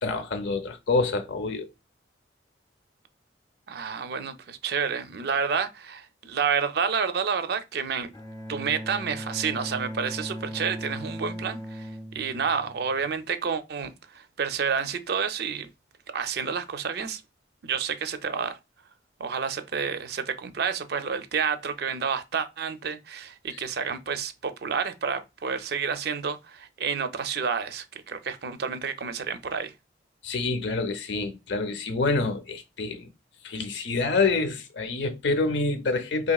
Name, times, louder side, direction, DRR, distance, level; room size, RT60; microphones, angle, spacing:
voice 1, 0.0-1.7 23.5-23.6 30.2-33.1 33.4-36.3, left 3 dB, 75° left, 0.6 m, -27 dB
voice 2, 3.7-8.1 8.5-15.7 16.1-17.2 17.6-18.6 19.2-29.7, right 6 dB, 60° right, 0.4 m, -29 dB
Bowed string instrument, 8.1-13.1, equal, 20° left, 0.5 m, -38 dB
4.0 x 2.8 x 2.3 m
head